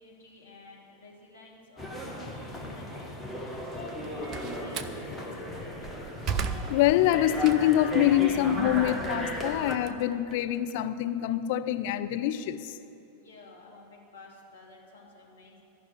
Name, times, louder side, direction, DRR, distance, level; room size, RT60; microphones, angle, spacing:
voice 1, 0.0-3.3 3.7-5.7 13.1-15.6, left 2 dB, 70° left, -2 dB, 2.4 m, -52 dB
sound 1, 1.8-9.8, equal, ahead, 1.4 m, -36 dB
Slam, 3.9-5.0 5.6-7.9 8.3-10.7, right 5 dB, 30° right, 0.6 m, -36 dB
voice 2, 6.7-12.8, left 12 dB, 50° left, 10 dB, 0.5 m, -25 dB
13.5 x 6.1 x 9.3 m, 2.8 s
figure-of-eight pair, 90°, 0 cm